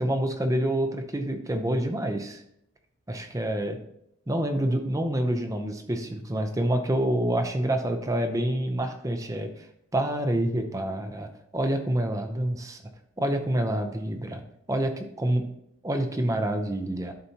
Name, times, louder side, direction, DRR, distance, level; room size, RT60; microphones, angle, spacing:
voice 1, 0.0-2.4 3.1-3.8 4.3-9.7 9.9-12.8 13.2-14.4 14.7-15.4 15.8-17.1, right 1 dB, 15° right, 6 dB, 0.6 m, -27 dB
11.0 x 4.3 x 2.8 m, 0.75 s
head